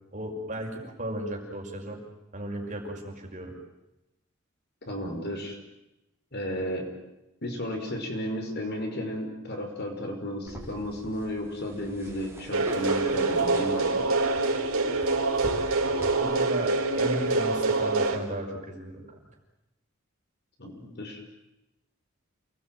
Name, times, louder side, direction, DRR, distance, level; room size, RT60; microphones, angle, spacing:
voice 1, 0.1-2.0 2.3-3.5 16.2-19.0, right 1 dB, 35° right, 1 dB, 5.7 m, -35 dB
voice 2, 4.9-5.6 6.3-6.9 7.4-14.1 20.6-21.2, equal, 50° left, 3 dB, 5.5 m, -33 dB
sound 1, 10.5-16.1, right 1 dB, 10° right, 5.3 m, -43 dB
sound 2, 12.5-18.2, right 3 dB, 75° right, 4.0 m, -25 dB
29.0 x 20.0 x 9.3 m, 0.92 s
head